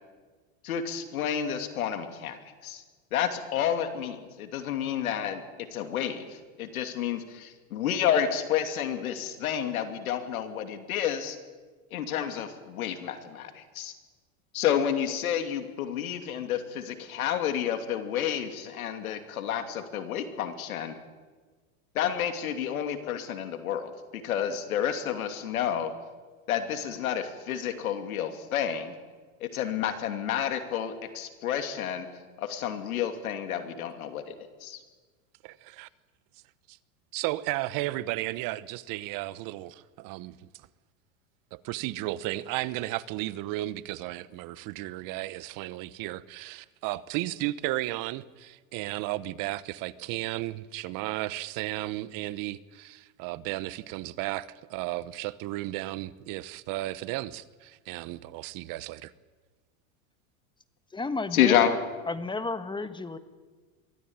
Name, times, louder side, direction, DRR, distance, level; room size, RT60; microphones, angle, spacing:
voice 1, 0.6-2.4 2.6-2.8 3.1-5.4 5.7-6.3 6.6-11.4 11.9-13.9 14.5-20.9 21.9-25.9 26.5-28.9 29.4-32.1 32.4-34.2 61.3-61.7, left 9 dB, 85° left, 7 dB, 2.8 m, -30 dB
voice 2, 35.4-35.9 36.7-36.8 37.1-40.5 41.5-59.1, right 17 dB, 50° right, 18 dB, 1.0 m, -34 dB
voice 3, 60.9-61.8 62.1-63.2, left 3 dB, 10° left, 12 dB, 1.3 m, -32 dB
23.5 x 15.5 x 8.9 m, 1.4 s
supercardioid pair, 110°, 42 cm